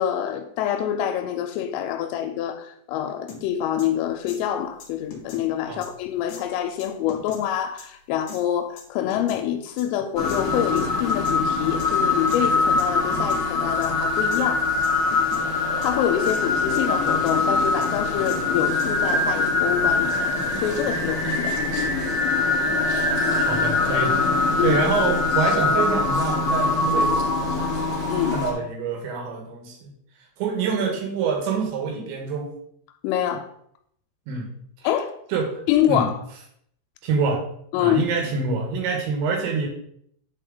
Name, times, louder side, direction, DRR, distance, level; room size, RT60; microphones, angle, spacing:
voice 1, 0.0-14.7 15.8-21.6 24.6-24.8 28.1-28.4 33.0-33.5 34.8-35.2 35.7-36.2 37.7-38.0, left 10 dB, 85° left, 6 dB, 3.1 m, -26 dB
sound 1, 3.3-3.4 3.8-3.9 4.3-4.4 4.8-5.4 5.8-5.9 6.3-6.4 6.8-7.4 7.8-7.9 8.3-8.4 8.8-9.4 9.8-9.9 10.3-10.4 10.8-11.4 11.8-11.9 12.3-12.4 12.8-12.9 13.1-13.4 13.8-13.9 14.3-14.4 14.8-15.4 15.8-15.9 16.2-16.4 16.7-17.4 17.8-17.9 18.3-18.4 18.8-19.3, left 6 dB, 55° left, 2.8 m, -39 dB
sound 2, 10.2-28.5, left 3 dB, 40° left, 3.4 m, -23 dB
voice 2, 23.4-24.2 24.6-27.7 28.3-29.9 30.4-32.5 34.3-34.5 34.8-34.9 35.3-35.6 35.9-36.1 37.0-37.4 37.8-39.7, right 5 dB, 70° right, 2 dB, 3.4 m, -26 dB
10.5 x 4.5 x 3.9 m, 0.68 s
omnidirectional pair, 5.9 m